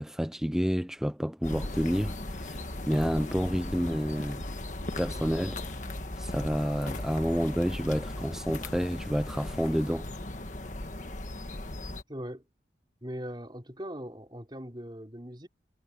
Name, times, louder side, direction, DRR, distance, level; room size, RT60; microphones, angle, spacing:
voice 1, 0.0-4.5 5.0-5.6 6.2-10.1, equal, 5° right, 0.6 m, -29 dB
sound 1, 1.4-12.0, left 1 dB, 45° left, 1.6 m, -37 dB
voice 2, 12.1-12.4 13.0-15.5, equal, 25° right, 4.0 m, -40 dB
head